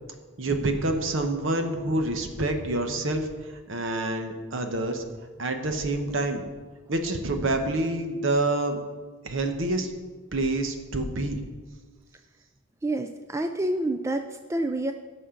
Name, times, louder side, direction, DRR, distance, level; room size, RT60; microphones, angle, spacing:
voice 1, 0.4-3.3 3.7-5.0 5.4-6.4 6.9-8.8 9.2-9.9 10.3-11.4, right 2 dB, 60° right, 6 dB, 1.1 m, -27 dB
voice 2, 12.8-14.9, right 1 dB, 15° right, 7 dB, 0.3 m, -28 dB
17.0 x 6.5 x 3.8 m, 1.5 s
head